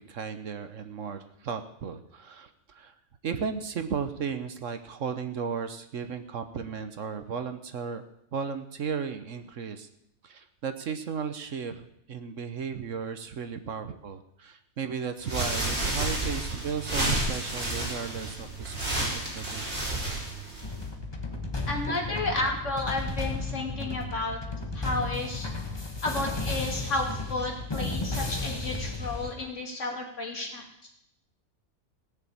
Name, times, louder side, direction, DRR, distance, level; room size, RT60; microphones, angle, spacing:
voice 1, 0.0-3.0 3.2-8.1 8.3-9.9 10.2-19.9, right 6 dB, 60° right, 9 dB, 1.2 m, -35 dB
sound 1, 15.2-20.9, right 2 dB, 45° right, 4.6 m, -31 dB
sound 2, 20.6-29.3, left 3 dB, 20° left, 1.3 m, -34 dB
voice 2, 21.7-24.4 24.7-25.5 26.0-30.6, left 2 dB, 55° left, 1 dB, 2.9 m, -32 dB
17.0 x 7.0 x 8.5 m, 0.76 s
omnidirectional pair, 1.5 m